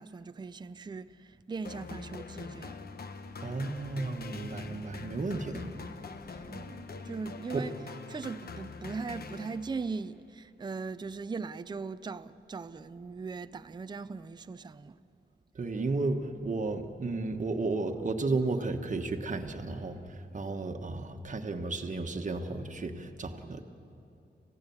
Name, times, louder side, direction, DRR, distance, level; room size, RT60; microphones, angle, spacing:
voice 1, 0.0-2.8 6.5-7.7 8.1-15.0, right 4 dB, 25° right, 0.5 m, -39 dB
sound 1, 1.6-10.0, left 4 dB, 55° left, 1.1 m, -44 dB
voice 2, 3.4-5.9 6.2-6.8 7.5-7.6 15.5-23.6, right 3 dB, 40° right, 1.4 m, -33 dB
28.5 x 16.0 x 7.2 m
wide cardioid pair, 115°, 19 cm